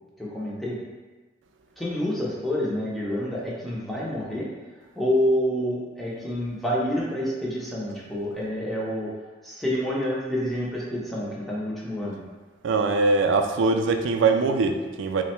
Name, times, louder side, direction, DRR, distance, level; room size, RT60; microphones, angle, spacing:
voice 1, 0.2-0.8 1.8-4.5 5.0-9.1 9.4-12.2, equal, ahead, -6 dB, 0.6 m, -28 dB
voice 2, 12.6-15.2, right 3 dB, 85° right, 6 dB, 0.3 m, -22 dB
3.3 x 2.2 x 4.2 m, 1.3 s
head